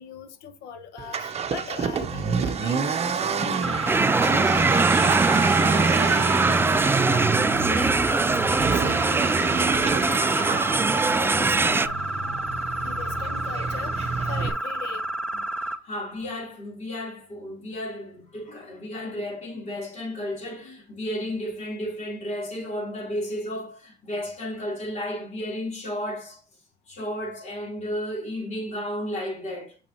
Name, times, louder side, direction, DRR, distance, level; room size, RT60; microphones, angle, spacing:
voice 1, 0.0-7.4 7.6-11.9 12.8-15.0, left 7 dB, 85° left, 1.1 m, -40 dB
Accelerating revving vroom, 1.0-14.5, right 5 dB, 40° right, 0.9 m, -29 dB
sound 1, 3.6-15.7, right 1 dB, 5° left, 0.8 m, -30 dB
sound 2, 3.9-11.9, right 4 dB, 15° right, 0.3 m, -22 dB
voice 2, 15.6-26.4 26.9-29.8, left 1 dB, 45° left, 3.5 m, -33 dB
7.1 x 5.8 x 2.9 m
cardioid pair, 110°, 17 cm